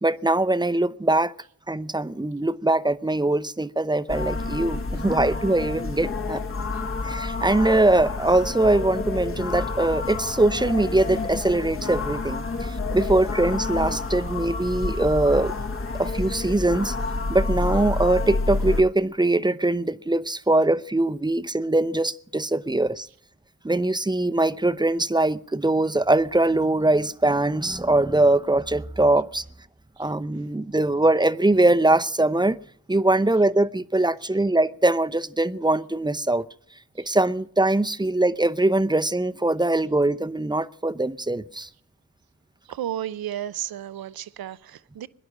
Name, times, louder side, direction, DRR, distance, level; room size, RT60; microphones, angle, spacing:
voice 1, 0.0-1.3 1.7-6.4 7.0-15.5 16.0-17.0 17.3-23.1 23.6-29.4 30.0-32.6 32.9-36.5 37.0-41.7, right 2 dB, 10° right, 0.7 m, -22 dB
sound 1, 4.1-18.8, left 3 dB, 35° left, 1.2 m, -29 dB
voice 2, 42.7-45.1, right 11 dB, 75° right, 0.7 m, -33 dB
22.0 x 10.0 x 6.3 m
cardioid pair, 45°, 36 cm